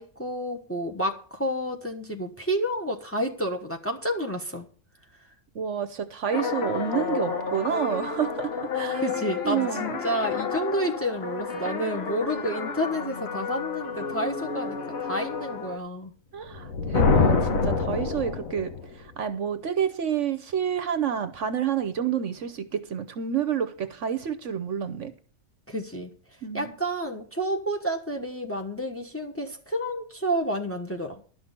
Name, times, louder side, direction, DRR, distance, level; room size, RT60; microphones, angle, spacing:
voice 1, 0.0-4.7 9.0-16.1 25.7-26.1 26.5-31.2, equal, 10° left, 1.1 m, -30 dB
voice 2, 5.5-9.1 9.4-10.0 16.3-25.1 26.4-26.7, right 8 dB, 60° right, 1.1 m, -29 dB
sound 1, 6.3-15.8, left 5 dB, 50° left, 1.2 m, -31 dB
Thunder, 16.5-18.8, left 4 dB, 70° left, 1.5 m, -23 dB
11.5 x 6.2 x 7.3 m
omnidirectional pair, 1.5 m